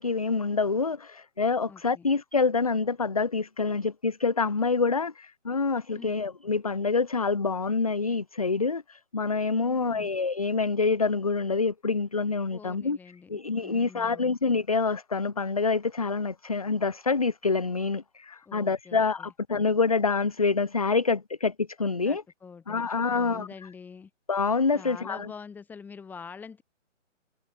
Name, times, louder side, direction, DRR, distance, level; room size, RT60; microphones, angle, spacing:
voice 1, 0.0-13.0 13.3-22.2 22.7-23.5 24.3-25.3, left 4 dB, 30° left, 0.6 m, -26 dB
voice 2, 1.7-2.1 5.9-6.2 9.6-10.1 12.5-14.4 18.5-19.3 22.0-24.1 24.7-26.6, left 5 dB, 5° left, 5.8 m, -46 dB
hypercardioid pair, 165°, 38 cm